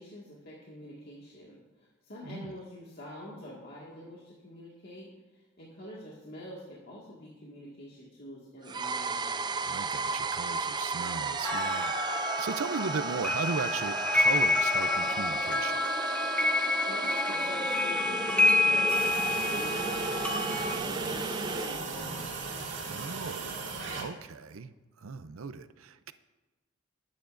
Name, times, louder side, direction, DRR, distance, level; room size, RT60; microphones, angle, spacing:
voice 1, 0.0-9.6 16.8-19.1 19.4-22.5, left 1 dB, 55° left, -6 dB, 1.9 m, -46 dB
sound 1, 8.6-21.8, right 4 dB, 20° right, 0.4 m, -34 dB
voice 2, 9.6-15.9 22.8-23.6 23.9-26.1, right 5 dB, 90° right, 12 dB, 0.6 m, -37 dB
sound 2, 11.4-20.7, left 3 dB, 5° left, 0.8 m, -28 dB
sound 3, 18.9-24.0, right 4 dB, 60° right, 2.1 m, -37 dB
20.0 x 9.2 x 2.6 m, 1.2 s
head